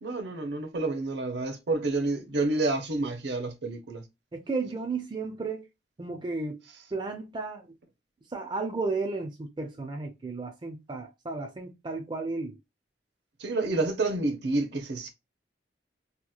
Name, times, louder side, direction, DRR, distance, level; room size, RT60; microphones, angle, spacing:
voice 1, 0.0-4.0 13.4-15.1, right 2 dB, 65° right, 0.6 m, -29 dB
voice 2, 4.3-5.7 6.0-6.6 6.9-7.7 8.3-12.6, right 3 dB, 25° right, 0.4 m, -33 dB
2.8 x 2.1 x 2.3 m
head